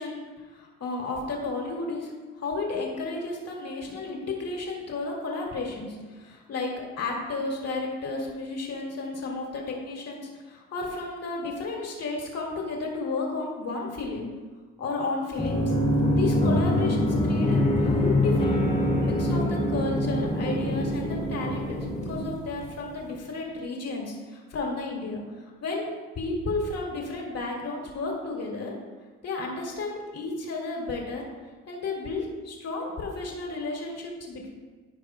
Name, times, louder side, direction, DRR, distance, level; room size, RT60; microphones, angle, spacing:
voice 1, 0.0-14.3 14.8-15.7 16.2-25.2 25.6-28.7 29.2-31.2 31.7-34.5, left 3 dB, 55° left, -1 dB, 2.1 m, -32 dB
sound 1, 15.3-22.9, left 1 dB, 20° left, 1.7 m, -24 dB
14.5 x 5.0 x 2.2 m, 1.4 s
cardioid pair, 90°, 30 cm